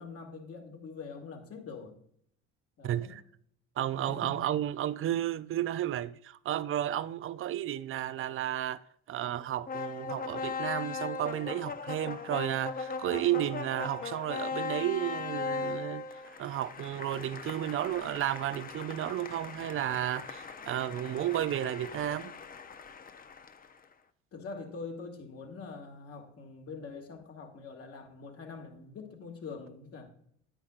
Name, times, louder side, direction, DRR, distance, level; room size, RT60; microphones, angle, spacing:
voice 1, 0.0-2.0 2.8-3.1 4.1-4.4 24.3-30.1, left 4 dB, 50° left, 2.2 m, -44 dB
voice 2, 2.8-3.2 3.8-8.8 9.1-16.1 16.4-22.3, right 12 dB, 40° right, 0.5 m, -32 dB
sound 1, 9.7-23.8, left 5 dB, 30° left, 0.8 m, -39 dB
9.8 x 9.0 x 2.5 m
supercardioid pair, 80°, 32 cm